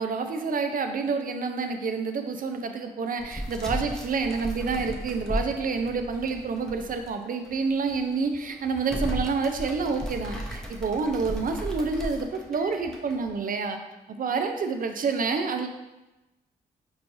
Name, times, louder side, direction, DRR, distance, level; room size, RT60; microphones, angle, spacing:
voice 1, 0.0-13.8 14.1-15.7, right 4 dB, 50° right, 6 dB, 0.5 m, -28 dB
sound 1, 3.2-7.1 7.5-7.6 8.1-8.4 8.8-13.2, equal, 5° left, 0.7 m, -35 dB
sound 2, 7.4-13.4, left 3 dB, 20° left, 1.1 m, -52 dB
4.5 x 3.1 x 2.6 m, 1.0 s
supercardioid pair, 55°, 18 cm